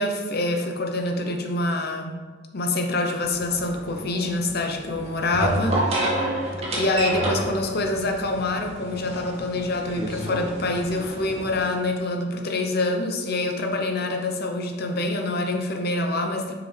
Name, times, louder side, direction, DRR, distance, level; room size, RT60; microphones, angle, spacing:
voice 1, 0.0-2.1 2.5-6.1 6.7-16.5, left 2 dB, 55° left, 3 dB, 0.8 m, -26 dB
sound 1, 3.2-11.7, right 1 dB, 30° right, 1.7 m, -30 dB
6.5 x 5.0 x 3.3 m, 1.5 s
head